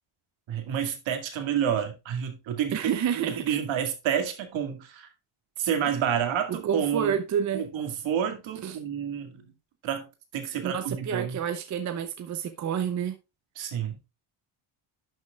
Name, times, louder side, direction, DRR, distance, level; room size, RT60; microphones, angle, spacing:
voice 1, 0.5-2.8 3.3-5.1 5.6-7.2 7.5-9.5 9.8-10.1 10.3-11.4 13.6-14.0, right 8 dB, 70° right, 2.1 m, -29 dB
voice 2, 2.7-3.5 6.5-7.6 8.6-8.8 10.6-13.2, right 8 dB, 35° right, 0.7 m, -29 dB
11.5 x 6.3 x 2.3 m
cardioid pair, 155°, 48 cm